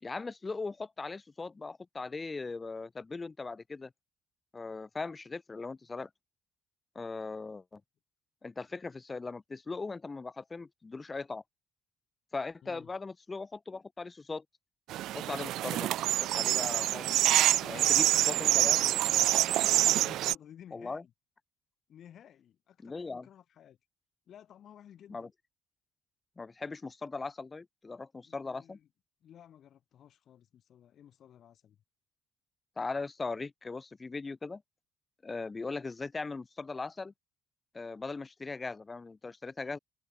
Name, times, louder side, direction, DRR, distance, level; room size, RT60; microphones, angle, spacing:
voice 1, 0.0-3.9 4.5-6.1 7.0-7.8 8.4-11.4 12.3-14.4 15.1-15.9 16.2-17.2 17.6-18.8 20.7-21.0 22.8-23.3 25.1-25.3 26.4-28.8 32.8-34.6 35.2-37.1 37.7-39.8, left 3 dB, 25° left, 0.5 m, -39 dB
sound 1, 14.9-20.4, right 14 dB, 70° right, 0.4 m, -26 dB
voice 2, 17.4-19.1 19.7-21.1 21.9-23.8 24.3-25.3 28.2-28.9 29.2-31.8, left 10 dB, 60° left, 2.1 m, -54 dB
supercardioid pair, 65°, 0 cm